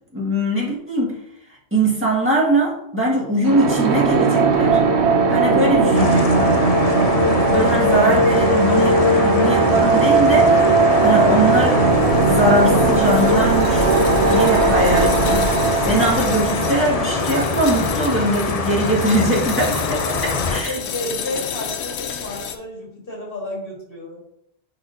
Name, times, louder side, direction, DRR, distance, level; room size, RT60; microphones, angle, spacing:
voice 1, 0.1-1.1 1.7-4.8 5.3-6.5 7.5-10.6 11.0-13.9 14.3-15.5 15.8-20.1 20.4-20.7, right 1 dB, 10° right, -6 dB, 1.8 m, -21 dB
sound 1, 3.4-18.2, right 3 dB, 90° right, 1.0 m, -18 dB
sound 2, 5.9-20.6, left 4 dB, 45° left, 0.6 m, -24 dB
sound 3, 11.9-22.6, left 5 dB, 85° left, 0.9 m, -30 dB
voice 2, 20.6-24.2, left 1 dB, 60° left, -3 dB, 1.8 m, -31 dB
9.7 x 4.3 x 2.7 m, 0.78 s
omnidirectional pair, 1.1 m